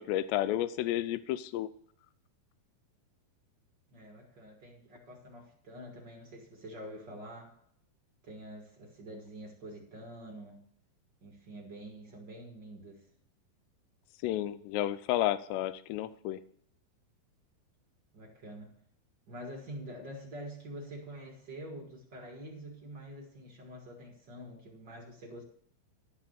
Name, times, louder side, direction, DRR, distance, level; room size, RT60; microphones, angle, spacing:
voice 1, 0.0-1.7 14.2-16.4, left 13 dB, 85° left, 15 dB, 2.7 m, -31 dB
voice 2, 3.9-7.6 8.2-10.6 11.2-13.1 18.1-18.7 19.3-25.4, right 1 dB, 50° right, 0 dB, 1.2 m, -46 dB
12.5 x 5.9 x 7.0 m, 0.65 s
omnidirectional pair, 4.9 m